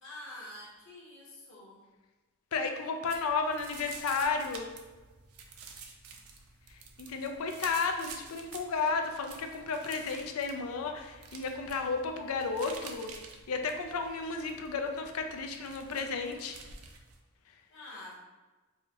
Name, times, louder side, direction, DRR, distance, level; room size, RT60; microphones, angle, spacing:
voice 1, 0.0-1.8 17.7-18.1, left 1 dB, 60° left, -5 dB, 1.1 m, -47 dB
voice 2, 2.5-4.7 7.0-13.1 13.5-16.6, left 4 dB, 80° left, 5 dB, 0.4 m, -33 dB
sound 1, 3.1-17.2, right 5 dB, 90° right, 0.5 m, -50 dB
4.8 x 2.2 x 2.8 m, 1.2 s
head